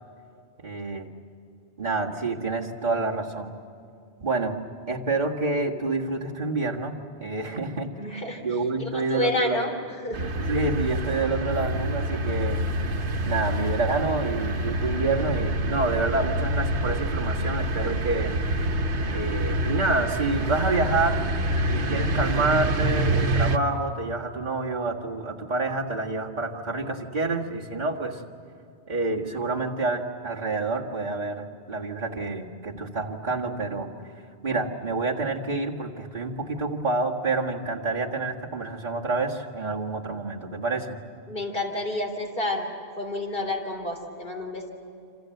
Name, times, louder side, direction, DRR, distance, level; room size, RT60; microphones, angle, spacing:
voice 1, 0.6-1.1 1.8-3.5 4.2-4.6 4.9-7.9 8.4-9.6 10.4-12.6 13.2-18.3 19.1-21.2 21.7-28.2 28.9-33.9 34.4-41.0, right 3 dB, 40° right, -1 dB, 2.0 m, -28 dB
voice 2, 8.0-8.4 8.8-10.3 41.3-42.7 43.0-44.7, left 1 dB, 50° left, 2 dB, 3.7 m, -29 dB
sound 1, 10.1-23.6, right 1 dB, 75° right, 1.4 m, -27 dB
27.5 x 26.5 x 7.9 m, 2.6 s
omnidirectional pair, 1.2 m